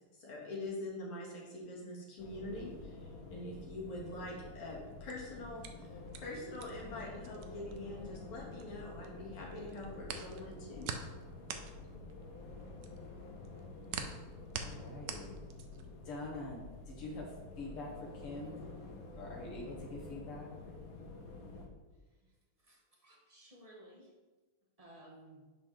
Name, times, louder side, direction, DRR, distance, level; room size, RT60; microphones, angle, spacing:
voice 1, 0.2-10.9, left 1 dB, 70° left, -3 dB, 2.5 m, -44 dB
sound 1, 2.2-21.7, left 3 dB, 55° left, 1.0 m, -49 dB
sound 2, 4.9-9.1 9.4-16.0, right 7 dB, 75° right, 1.0 m, -45 dB
voice 2, 14.6-15.3 16.1-18.7 19.2-20.5, left 2 dB, 85° left, -2 dB, 2.4 m, -45 dB
voice 3, 22.6-24.1 24.8-25.4, right 1 dB, 40° right, -2 dB, 0.5 m, -57 dB
10.5 x 4.0 x 3.2 m, 1.3 s
omnidirectional pair, 2.4 m